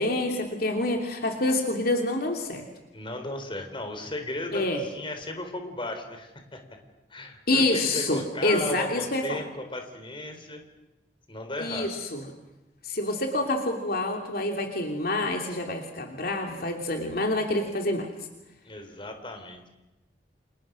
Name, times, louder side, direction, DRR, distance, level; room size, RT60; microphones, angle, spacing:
voice 1, 0.0-2.6 4.5-4.8 7.5-9.4 11.6-12.2 12.8-18.1, left 2 dB, 60° left, 3 dB, 3.0 m, -27 dB
voice 2, 2.9-6.6 7.1-10.6 11.3-11.9 18.6-19.7, left 1 dB, 30° left, 6 dB, 4.0 m, -36 dB
30.0 x 28.5 x 6.4 m, 0.99 s
head